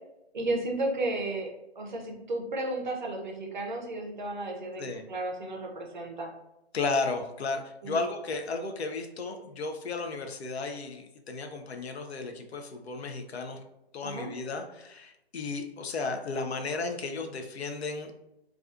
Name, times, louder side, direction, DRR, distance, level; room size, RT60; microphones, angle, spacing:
voice 1, 0.3-1.5 1.8-4.8 5.1-6.3 7.8-8.0 14.0-14.3, right 2 dB, 45° right, 1 dB, 0.5 m, -33 dB
voice 2, 6.7-13.6 13.9-18.1, left 3 dB, 75° left, 5 dB, 0.5 m, -34 dB
2.4 x 2.3 x 2.4 m, 0.88 s
hypercardioid pair, 160°, 32 cm